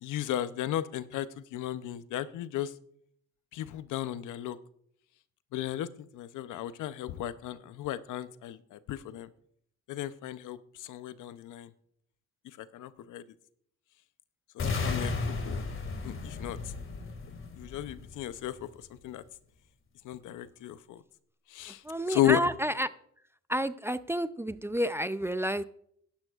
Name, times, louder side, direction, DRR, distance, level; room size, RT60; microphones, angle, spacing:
voice 1, 0.0-2.7 3.5-4.6 5.5-5.9 6.1-9.3 9.9-11.7 12.4-13.2 14.5-15.1 15.4-15.6 16.0-16.6 17.5-18.6 19.0-19.2 20.0-21.0 21.5-21.8 22.1-22.4, left 12 dB, 80° left, 14 dB, 0.7 m, -34 dB
sound 1, 14.6-18.6, left 4 dB, 40° left, 2.2 m, -34 dB
voice 2, 21.9-22.9 23.5-25.6, equal, 10° right, 14 dB, 0.4 m, -30 dB
16.5 x 11.5 x 2.4 m, 0.68 s
cardioid pair, 90°, 30 cm